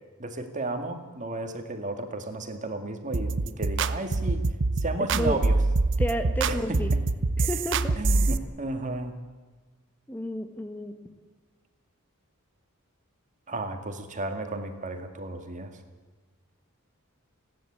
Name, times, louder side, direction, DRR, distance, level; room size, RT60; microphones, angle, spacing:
voice 1, 0.2-4.4 4.8-5.6 6.5-7.0 8.0-9.2 13.5-15.7, right 2 dB, 35° right, 6 dB, 2.0 m, -33 dB
sound 1, 3.1-8.4, right 3 dB, 55° right, 0.8 m, -25 dB
voice 2, 5.1-5.4 6.0-6.9 7.4-8.0 10.1-11.1, equal, 10° left, 6 dB, 1.1 m, -31 dB
29.5 x 10.5 x 8.8 m, 1.4 s
head